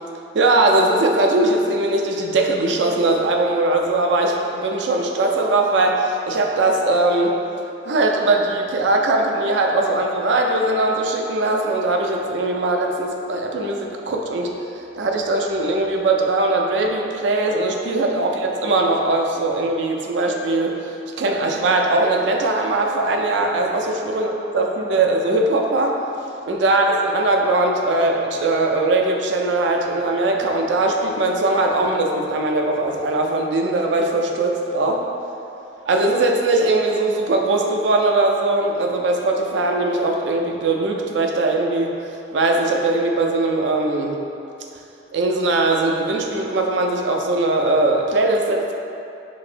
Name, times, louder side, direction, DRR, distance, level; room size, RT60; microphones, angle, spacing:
voice 1, 0.3-7.3 7.8-14.5 14.9-20.7 21.2-26.0 26.5-35.0 35.9-41.9 42.3-44.2 45.1-48.7, right 2 dB, 70° right, 1 dB, 0.4 m, -20 dB
5.2 x 2.8 x 2.5 m, 2.7 s
head